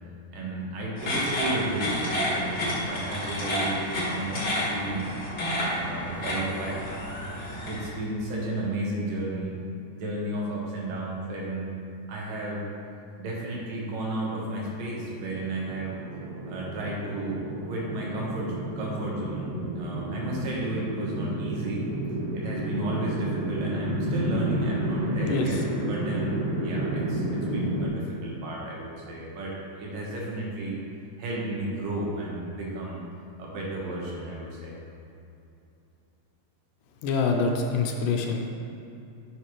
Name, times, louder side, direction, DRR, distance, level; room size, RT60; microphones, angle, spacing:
voice 1, 0.3-5.1 5.7-6.8 7.5-9.6 9.9-11.7 12.1-12.7 13.2-16.0 16.4-21.8 22.3-25.6 25.9-30.8 31.2-33.0 33.4-34.7, right 1 dB, 80° right, -4 dB, 3.2 m, -33 dB
sound 1, 1.0-7.9, left 1 dB, 35° left, 2.0 m, -30 dB
sound 2, 14.6-27.9, right 1 dB, 50° right, 2.5 m, -31 dB
voice 2, 25.3-25.6 37.0-38.5, left 4 dB, 80° left, 2 dB, 2.2 m, -25 dB
11.0 x 6.5 x 3.2 m, 2.7 s
omnidirectional pair, 3.9 m